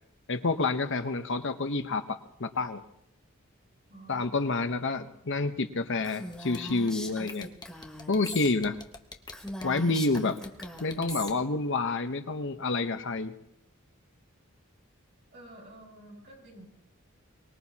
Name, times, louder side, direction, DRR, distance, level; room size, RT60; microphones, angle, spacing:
voice 1, 0.3-2.8 4.1-7.5 8.1-8.8 9.6-10.4 10.8-13.3, left 3 dB, 65° left, 9 dB, 0.9 m, -29 dB
voice 2, 3.9-4.3 15.3-16.7, right 1 dB, 55° right, -2 dB, 7.7 m, -49 dB
Female speech woman speaking, 6.0-8.5 8.9-9.0 9.3-11.3, left 1 dB, 5° left, 2.4 m, -40 dB
sound 1, 6.3-11.3, left 3 dB, 20° left, 1.0 m, -45 dB
23.5 x 20.5 x 2.9 m, 0.76 s
head